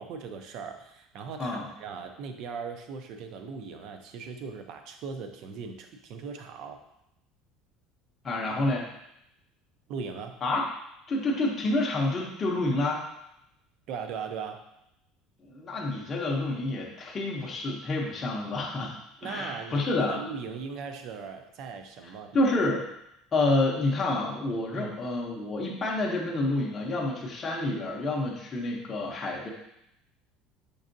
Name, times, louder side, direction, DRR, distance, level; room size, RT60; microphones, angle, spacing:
voice 1, 0.0-6.8 9.9-10.4 13.9-14.6 19.2-22.4 24.8-25.0, right 5 dB, 45° right, 6 dB, 0.4 m, -39 dB
voice 2, 8.2-8.9 10.4-10.7 11.1-13.0 15.4-19.0 19.2-20.2 22.3-22.8 23.3-29.5, left 2 dB, 20° left, -2 dB, 0.6 m, -28 dB
5.3 x 3.6 x 2.6 m, 0.81 s
cardioid pair, 180°, 0 cm